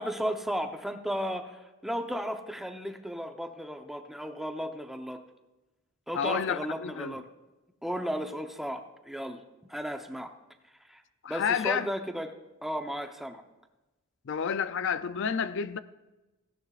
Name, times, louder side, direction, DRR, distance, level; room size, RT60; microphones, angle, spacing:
voice 1, 0.0-5.2 6.1-7.3 7.8-9.4 9.7-10.3 10.9-11.0 11.3-12.3 12.6-13.4, equal, ahead, 0.8 m, -34 dB
voice 2, 6.1-7.1 11.2-11.9 14.3-15.8, left 7 dB, 60° left, 0.4 m, -30 dB
17.5 x 16.5 x 2.4 m
head